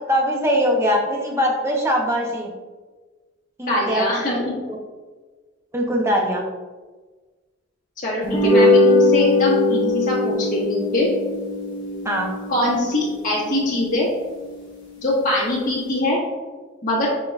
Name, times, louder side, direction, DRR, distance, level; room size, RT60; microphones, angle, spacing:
voice 1, 0.1-2.5 3.6-4.1 4.7-4.8 5.7-6.4 12.0-12.3, equal, 15° right, 0 dB, 0.6 m, -21 dB
voice 2, 3.7-4.6 8.0-11.1 12.5-14.1 15.0-16.2 16.8-17.1, left 1 dB, 40° left, -5 dB, 1.5 m, -23 dB
sound 1, 8.2-14.8, left 2 dB, 20° left, 1.1 m, -21 dB
5.9 x 3.7 x 2.3 m, 1.3 s
head